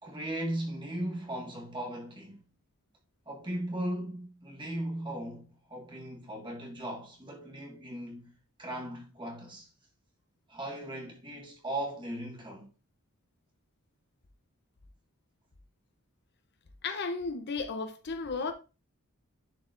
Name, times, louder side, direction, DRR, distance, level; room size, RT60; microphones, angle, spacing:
voice 1, 0.0-2.4 3.2-8.3 8.6-9.7 10.5-12.7, right 1 dB, 20° right, 1.6 m, -37 dB
voice 2, 16.8-18.5, left 4 dB, 50° left, 0.6 m, -34 dB
11.0 x 4.2 x 2.5 m
head